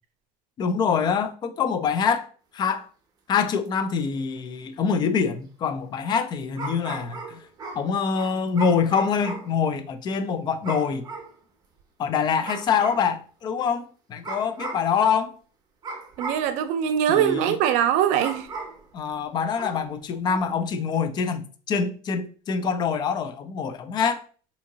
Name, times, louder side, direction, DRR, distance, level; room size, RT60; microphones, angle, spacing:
voice 1, 0.6-2.3 2.5-2.9 3.3-7.4 7.7-11.1 12.0-15.4 17.1-17.5 18.9-24.2, left 6 dB, 35° left, 0.4 m, -25 dB
sound 1, 3.7-3.8 6.6-9.6 10.6-11.3 12.4-13.1 14.2-14.9 15.8-16.5 18.2-18.9 19.5-19.9 20.2-20.5, right 3 dB, 30° right, 0.7 m, -36 dB
voice 2, 16.2-18.5, right 10 dB, 65° right, 0.5 m, -22 dB
3.6 x 2.8 x 2.7 m
cardioid pair, 140°, 13 cm